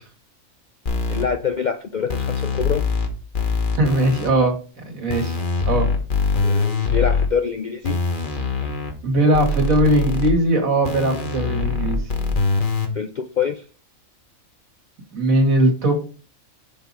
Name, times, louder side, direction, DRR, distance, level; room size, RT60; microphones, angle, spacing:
sound 1, 0.9-1.2 2.1-3.1 3.3-4.3 5.1-7.3 7.8-8.9 9.3-10.3 10.8-12.9, left 4 dB, 40° left, 1.3 m, -23 dB
voice 1, 1.1-2.8 6.4-8.0 12.9-13.6, left 7 dB, 60° left, 8 dB, 0.4 m, -25 dB
voice 2, 3.8-4.6 4.9-5.4 5.7-5.9 9.0-12.0 15.1-15.9, right 1 dB, 80° right, 3 dB, 2.4 m, -19 dB
7.1 x 5.8 x 4.1 m, 0.37 s
omnidirectional pair, 1.4 m